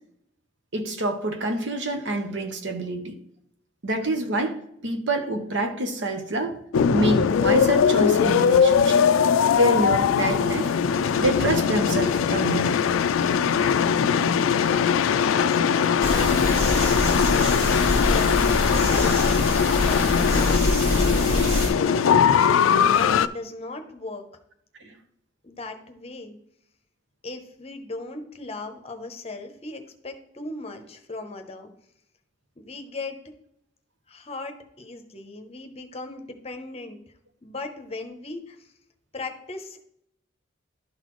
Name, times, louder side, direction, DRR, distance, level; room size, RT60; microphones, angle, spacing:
voice 1, 0.7-3.2 3.8-4.6 4.8-6.6 6.9-9.1 9.5-10.7 11.2-12.8 24.8-24.9, right 1 dB, 65° right, 1.0 m, -26 dB
sound 1, 6.7-23.3, left 7 dB, 85° left, 0.3 m, -20 dB
voice 2, 15.2-21.0 21.3-22.3 22.9-24.3 24.8-25.0 25.4-26.4 27.2-31.7 32.6-33.2 34.1-37.0 37.4-38.7 39.1-39.8, left 2 dB, 30° left, 0.8 m, -38 dB
sound 2, 16.0-21.7, equal, 80° right, 3.2 m, -25 dB
12.0 x 4.0 x 3.1 m
head